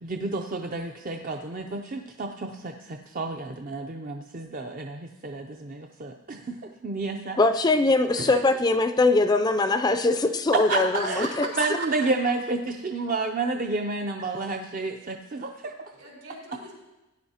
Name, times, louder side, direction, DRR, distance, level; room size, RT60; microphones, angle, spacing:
voice 1, 0.0-6.6 6.8-7.4 8.2-8.4 10.7-10.8 11.1-11.2 11.6-15.7, right 3 dB, 40° right, 3 dB, 0.5 m, -30 dB
voice 2, 7.4-11.5, left 2 dB, 20° left, 8 dB, 0.4 m, -22 dB
voice 3, 10.7-12.1 14.2-14.3 15.9-16.7, right 2 dB, 75° right, -3 dB, 4.3 m, -36 dB
17.0 x 10.5 x 2.8 m, 1.1 s
head